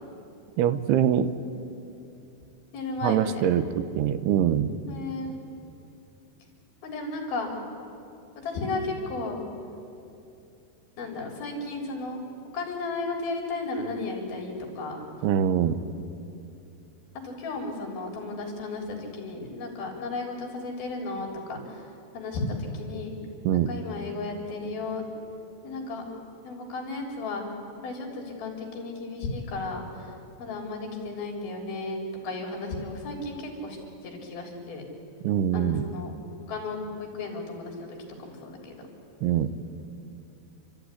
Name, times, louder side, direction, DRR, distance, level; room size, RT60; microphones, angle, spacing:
voice 1, 0.6-1.3 3.0-4.8 15.2-15.8 23.4-23.7 35.2-35.9 39.2-39.5, right 9 dB, 85° right, 12 dB, 2.9 m, -24 dB
voice 2, 2.7-3.5 4.9-5.4 6.8-7.5 8.4-9.5 11.0-12.2 12.5-15.0 17.2-21.9 22.1-23.1 23.5-25.1 25.6-26.0 26.4-27.4 27.8-30.1 30.4-33.8 34.0-34.8 35.5-36.1 36.5-38.8, left 3 dB, 70° left, 1 dB, 5.3 m, -34 dB
29.5 x 13.5 x 9.8 m, 2.7 s
omnidirectional pair, 4.5 m